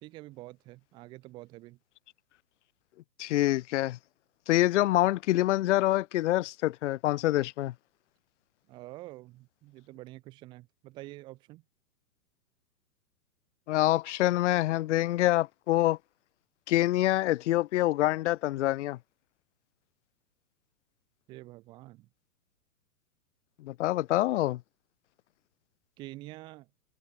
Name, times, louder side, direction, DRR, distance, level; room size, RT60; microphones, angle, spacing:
voice 1, 0.0-1.8 8.7-11.6 21.3-22.1 26.0-26.7, right 19 dB, 10° right, 0.5 m, -47 dB
voice 2, 3.2-4.0 4.5-7.7 13.7-16.0 16.7-19.0 23.6-24.6, left 16 dB, 45° left, 0.6 m, -26 dB
hypercardioid pair, 135°, 49 cm